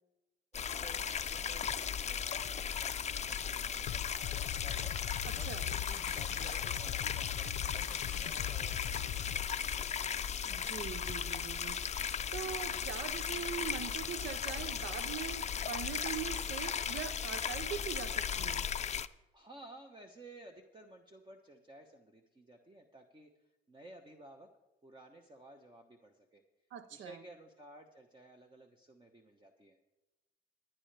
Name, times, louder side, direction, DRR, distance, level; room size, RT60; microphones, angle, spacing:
sound 1, 0.5-19.1, left 7 dB, 35° left, 0.5 m, -37 dB
voice 1, 0.5-9.7 19.3-23.3 23.7-24.5 24.8-26.4 26.9-29.8, right 1 dB, 25° right, 3 dB, 1.1 m, -55 dB
sound 2, 3.9-9.5, left 13 dB, 85° left, 0.5 m, -41 dB
voice 2, 5.2-5.7 10.4-18.7 26.7-27.2, right 9 dB, 75° right, 11 dB, 0.7 m, -42 dB
18.5 x 10.0 x 3.4 m, 1.0 s
cardioid pair, 90°, 20 cm